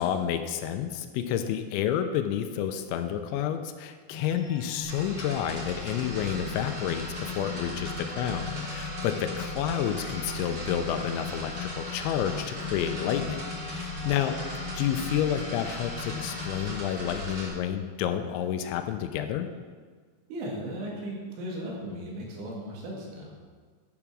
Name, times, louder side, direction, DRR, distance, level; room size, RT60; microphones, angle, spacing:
voice 1, 0.0-19.5, left 10 dB, 85° left, 8 dB, 3.0 m, -30 dB
sound 1, 4.1-16.7, left 5 dB, 50° left, 1.5 m, -39 dB
sound 2, 4.8-17.5, right 1 dB, 30° right, 2.6 m, -38 dB
voice 2, 20.3-23.3, right 1 dB, 80° right, -2 dB, 4.5 m, -36 dB
12.0 x 7.1 x 6.2 m, 1.6 s
omnidirectional pair, 5.4 m